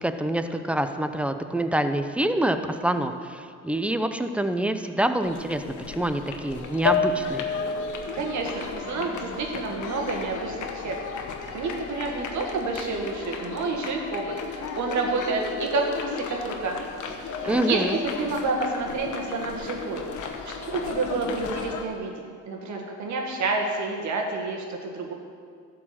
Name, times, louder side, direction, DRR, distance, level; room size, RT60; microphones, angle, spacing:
voice 1, 0.0-7.5 17.5-18.0, right 1 dB, 5° right, 8 dB, 0.6 m, -26 dB
sound 1, 5.2-21.8, left 5 dB, 75° left, 1.1 m, -36 dB
sound 2, 6.8-10.3 10.6-11.7, left 5 dB, 35° left, 0.6 m, -31 dB
voice 2, 8.1-11.0 11.5-16.8 17.4-20.1 20.4-22.1 22.5-25.1, right 3 dB, 70° right, 1 dB, 1.7 m, -29 dB
11.5 x 4.7 x 7.5 m, 2.1 s
cardioid pair, 90°, 30 cm